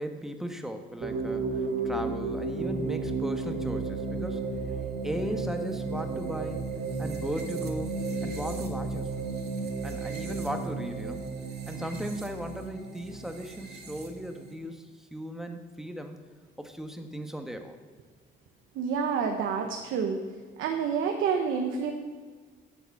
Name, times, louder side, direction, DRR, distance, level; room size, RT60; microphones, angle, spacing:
voice 1, 0.0-4.5 5.0-6.6 7.0-7.9 8.2-9.1 9.8-11.2 11.7-16.2 16.6-17.8, equal, ahead, 5 dB, 1.3 m, -37 dB
sound 1, 1.0-14.5, right 3 dB, 55° right, 2.2 m, -33 dB
voice 2, 18.7-20.2 20.6-21.9, right 6 dB, 85° right, 3 dB, 1.1 m, -28 dB
9.9 x 7.2 x 7.1 m, 1.4 s
cardioid pair, 90°, 20 cm